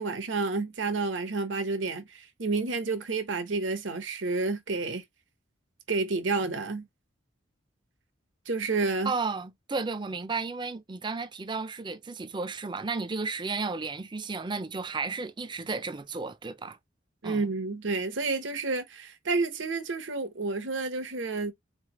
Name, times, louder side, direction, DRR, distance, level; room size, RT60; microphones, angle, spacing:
voice 1, 0.0-5.0 5.9-6.9 8.5-9.1 17.2-21.5, right 3 dB, 75° right, 1.1 m, -30 dB
voice 2, 9.0-16.8 17.2-17.4, right 4 dB, 25° right, 0.5 m, -33 dB
4.1 x 3.4 x 3.0 m
head